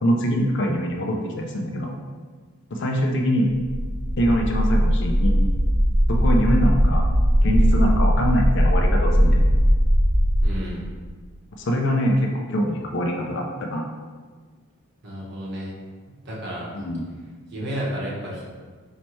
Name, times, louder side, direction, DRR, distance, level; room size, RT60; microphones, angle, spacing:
voice 1, 0.0-1.9 2.7-3.5 4.2-5.4 6.1-7.1 7.4-9.4 11.6-13.9 16.8-17.0, equal, 55° left, 1 dB, 0.5 m, -23 dB
sound 1, 3.5-10.4, equal, 70° right, 0.8 m, -19 dB
voice 2, 10.4-10.8 15.0-15.7 16.1-16.7 17.5-18.4, equal, 50° right, -5 dB, 1.0 m, -31 dB
4.4 x 2.8 x 3.1 m, 1.5 s
head